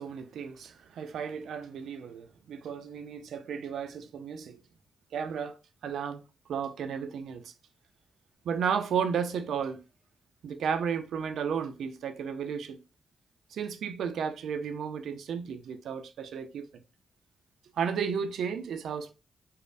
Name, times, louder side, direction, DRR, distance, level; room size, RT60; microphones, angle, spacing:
voice 1, 0.0-4.6 5.1-5.6 5.8-6.2 6.5-7.5 8.4-9.8 10.4-12.8 13.5-16.7 17.8-19.1, right 7 dB, 80° right, 0.3 m, -33 dB
3.1 x 2.0 x 2.5 m
supercardioid pair, 50°, 0 cm